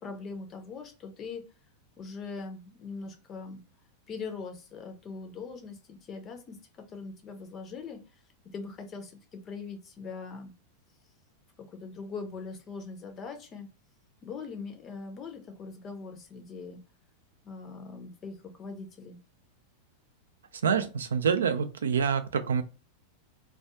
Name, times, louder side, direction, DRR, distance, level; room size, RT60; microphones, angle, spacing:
voice 1, 0.0-1.4 2.0-3.6 4.1-8.0 8.5-10.5 11.7-13.7 14.2-16.8 17.4-19.2, left 4 dB, 30° left, 0.5 m, -41 dB
voice 2, 20.6-22.6, right 6 dB, 65° right, 0.3 m, -26 dB
2.3 x 2.2 x 2.8 m
figure-of-eight pair, 90°, 0 cm